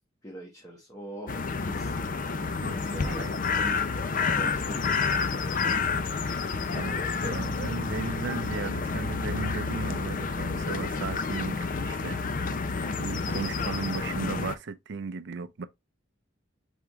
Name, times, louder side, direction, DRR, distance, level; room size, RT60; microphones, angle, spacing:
voice 1, 0.2-1.3 1.6-1.9 2.9-3.8 4.3-5.0 5.4-5.9 12.3-12.7, equal, 20° left, 1.1 m, -42 dB
sound 1, 1.3-14.6, left 4 dB, 45° left, 0.5 m, -29 dB
voice 2, 2.6-3.4 6.7-12.6 13.0-15.7, right 4 dB, 60° right, 0.5 m, -36 dB
4.8 x 3.6 x 3.0 m
head